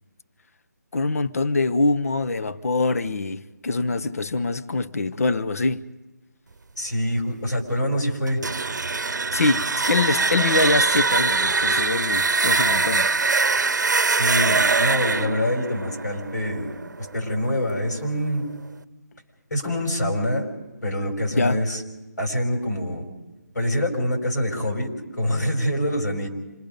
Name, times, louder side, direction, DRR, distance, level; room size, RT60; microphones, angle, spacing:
voice 1, 0.9-5.8 9.3-13.1 21.3-21.6, left 3 dB, 55° left, 0.8 m, -24 dB
voice 2, 6.8-8.4 12.6-12.8 14.1-16.7 17.1-18.4 19.5-20.5 20.8-21.8 22.2-23.0 23.5-24.9 25.2-26.3, equal, 85° left, 5.5 m, -25 dB
sound 1, 8.3-17.1, right 4 dB, 80° right, 0.7 m, -22 dB
26.5 x 22.5 x 5.2 m
hypercardioid pair, 175°, 9 cm